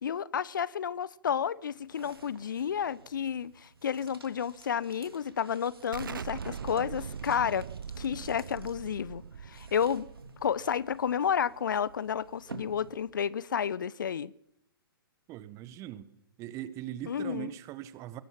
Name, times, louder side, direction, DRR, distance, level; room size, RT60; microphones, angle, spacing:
voice 1, 0.0-7.7 8.0-10.1 10.4-14.3 17.1-17.5, left 8 dB, 60° left, 0.7 m, -31 dB
sound 1, 1.3-13.4, right 3 dB, 80° right, 3.2 m, -52 dB
Explosion, 5.9-11.4, right 6 dB, 65° right, 0.9 m, -41 dB
voice 2, 15.3-16.1 16.4-18.2, right 12 dB, 25° right, 1.4 m, -40 dB
23.5 x 20.0 x 5.9 m
figure-of-eight pair, 120°, 12 cm